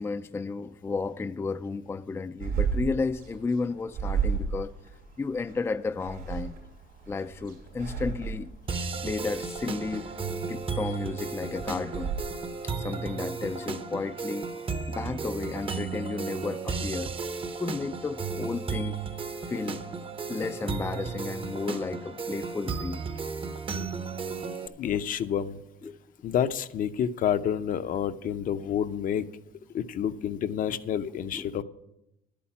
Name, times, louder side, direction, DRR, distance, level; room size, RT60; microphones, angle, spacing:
voice 1, 0.0-4.7 5.2-6.6 7.1-8.5 9.0-10.1 10.5-12.1 12.6-14.5 14.9-17.1 17.6-19.0 19.5-19.8 20.3-23.0 23.7-24.0 24.7-24.9 25.8-26.0 29.2-29.3 30.1-30.3 31.3-31.6, left 4 dB, 15° left, 0.3 m, -33 dB
sound 1, 2.4-12.2, right 6 dB, 75° right, 3.6 m, -34 dB
sound 2, 8.7-24.7, right 5 dB, 30° right, 0.8 m, -34 dB
voice 2, 24.8-25.6 26.2-29.3 29.7-31.6, left 9 dB, 55° left, 0.6 m, -29 dB
11.0 x 8.6 x 5.8 m
cardioid pair, 110°, 17 cm